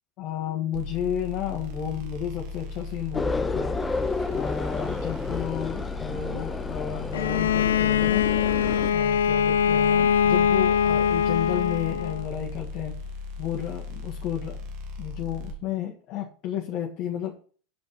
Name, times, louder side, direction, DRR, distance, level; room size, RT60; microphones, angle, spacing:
voice 1, 0.2-3.8 4.3-8.3 8.9-13.0 13.4-14.6 15.0-17.3, left 9 dB, 50° left, -1 dB, 1.7 m, -32 dB
sound 1, 0.7-15.5, left 3 dB, 55° right, 2.2 m, -37 dB
sound 2, 3.1-8.9, left 3 dB, 15° left, 0.7 m, -31 dB
Bowed string instrument, 7.1-12.3, left 8 dB, 80° left, 0.4 m, -22 dB
7.5 x 5.2 x 6.4 m, 0.42 s
hypercardioid pair, 95°, 0 cm